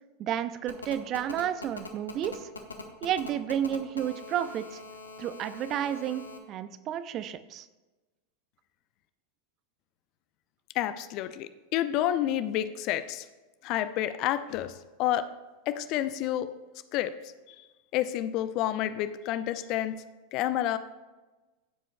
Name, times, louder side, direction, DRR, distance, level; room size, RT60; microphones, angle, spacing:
voice 1, 0.2-2.5 3.0-4.8 5.2-7.7, right 10 dB, 40° right, 13 dB, 0.5 m, -31 dB
Telephone, 0.7-6.4, left 4 dB, 85° left, 1.0 m, -42 dB
voice 2, 10.7-13.2 13.6-15.2 15.7-16.5 16.9-17.1 17.9-20.0 20.3-20.8, left 12 dB, 45° left, 12 dB, 0.5 m, -29 dB
15.0 x 7.5 x 2.2 m, 1.2 s
figure-of-eight pair, 90°, 0 cm